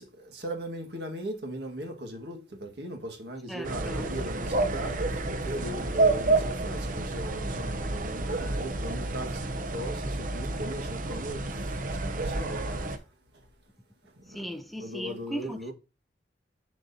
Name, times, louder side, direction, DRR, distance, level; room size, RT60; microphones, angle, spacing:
voice 1, 0.0-9.4 9.7-12.9 14.3-14.5 14.8-15.7, right 1 dB, 70° right, 1.7 m, -38 dB
voice 2, 3.5-4.1 14.3-15.7, equal, ahead, 0.6 m, -38 dB
sound 1, 3.6-13.0, right 2 dB, 50° right, 0.7 m, -29 dB
7.4 x 6.4 x 2.7 m
head